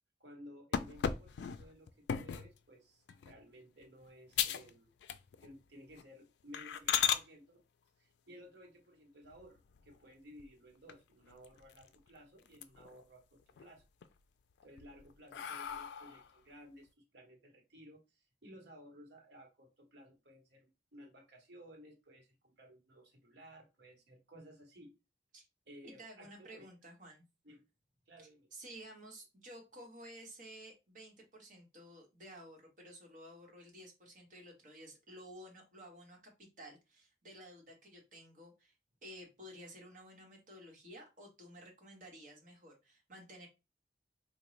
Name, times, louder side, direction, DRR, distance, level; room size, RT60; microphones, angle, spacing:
voice 1, 0.2-4.9 5.4-7.6 8.0-13.8 14.6-24.9 25.7-26.7 27.4-27.6 28.1-28.5, equal, 75° right, 1 dB, 1.1 m, -57 dB
sound 1, 0.7-2.5 3.1-3.4 3.8-3.9 4.3-4.7 5.0-5.5 5.9-6.0 6.5-7.2 9.2-9.9 10.4-10.5 10.9-11.0 11.3-12.1 12.4-13.0 13.4-14.1 14.6-16.3, left 9 dB, 80° left, 0.3 m, -37 dB
voice 2, 25.8-27.2 28.5-38.7 39.0-43.5, right 1 dB, 45° right, 0 dB, 1.2 m, -53 dB
3.7 x 2.2 x 3.1 m, 0.26 s
head